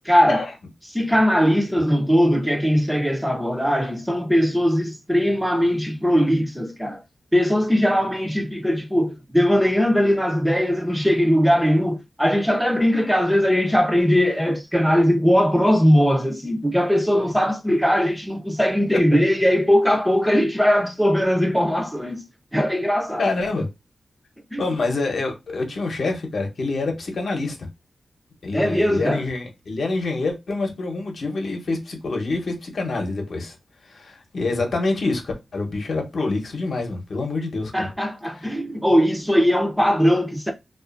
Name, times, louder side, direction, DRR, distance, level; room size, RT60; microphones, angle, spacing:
voice 1, 0.0-0.5 0.9-7.0 7.3-22.2 22.5-23.3 24.5-24.6 28.5-29.2 37.7-40.5, equal, 5° right, 0.5 m, -20 dB
voice 2, 23.2-23.7 24.6-27.7 28.4-33.5 33.9-37.9 38.3-38.5, left 3 dB, 70° left, 0.8 m, -26 dB
2.5 x 2.4 x 2.4 m
wide cardioid pair, 75°, 0 cm